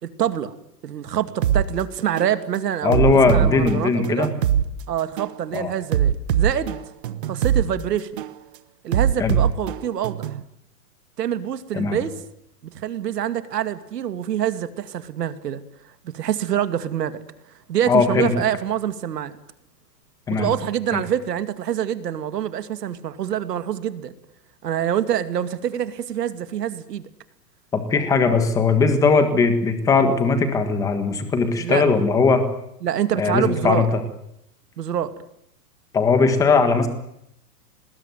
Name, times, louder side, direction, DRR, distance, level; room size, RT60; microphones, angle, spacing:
voice 1, 0.0-0.5 0.8-4.3 4.9-6.8 7.3-8.2 8.8-10.4 11.2-12.1 12.6-15.6 16.0-17.2 17.7-19.3 20.3-24.1 24.6-27.1 31.6-31.8 32.8-33.9 34.8-35.1, right 10 dB, 85° right, 11 dB, 2.4 m, -26 dB
sound 1, 1.4-1.6 2.2-2.4 2.9-4.6 5.2-5.4 5.9-7.6 8.2-8.4 8.9-10.4, right 9 dB, 35° right, 1.1 m, -21 dB
voice 2, 2.8-4.3 5.5-5.7 9.2-9.4 11.7-12.0 17.9-18.3 20.3-20.5 20.9-21.0 27.7-32.4 33.2-33.8 35.9-36.9, left 4 dB, 5° left, 8 dB, 1.5 m, -19 dB
25.5 x 20.5 x 9.3 m, 0.79 s
supercardioid pair, 180°, 47 cm